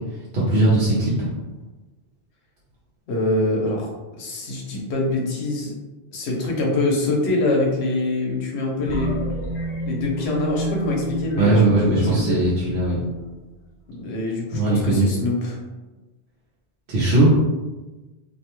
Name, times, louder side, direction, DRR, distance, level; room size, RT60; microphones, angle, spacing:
voice 1, 0.3-1.3 11.4-13.0 14.5-15.1 16.9-17.3, right 2 dB, 65° right, -8 dB, 0.8 m, -19 dB
voice 2, 3.1-3.9 4.2-5.7 6.1-9.3 9.8-12.4 13.9-15.6, left 2 dB, 85° left, -1 dB, 0.9 m, -24 dB
sound 1, 8.9-13.5, equal, 60° left, 0.7 m, -30 dB
2.5 x 2.1 x 2.9 m, 1.2 s
omnidirectional pair, 1.1 m